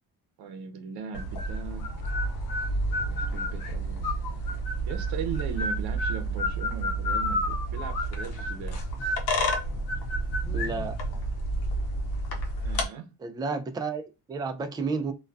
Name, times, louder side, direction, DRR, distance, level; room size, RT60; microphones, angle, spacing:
voice 1, 0.4-1.9 2.9-4.0 4.9-8.8 12.6-13.1, right 6 dB, 75° right, 0.7 m, -38 dB
sound 1, 1.1-12.9, right 1 dB, 85° left, 0.8 m, -29 dB
voice 2, 10.5-11.0 13.2-15.1, right 4 dB, 10° right, 0.3 m, -31 dB
2.3 x 2.2 x 2.5 m
cardioid pair, 100°, 37 cm